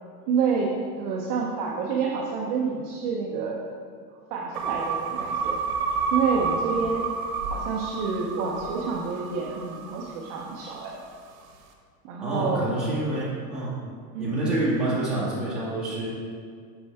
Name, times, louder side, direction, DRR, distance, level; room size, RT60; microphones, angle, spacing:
voice 1, 0.3-3.7 4.1-5.6 6.1-7.1 7.5-11.0 12.0-12.7 14.1-14.4, right 5 dB, 30° right, -2 dB, 0.4 m, -28 dB
sound 1, 4.5-10.9, right 5 dB, 65° right, 1.0 m, -30 dB
voice 2, 12.2-13.8 14.2-16.1, right 1 dB, ahead, -11 dB, 1.5 m, -27 dB
6.9 x 5.3 x 3.3 m, 2.1 s
supercardioid pair, 150°, 46 cm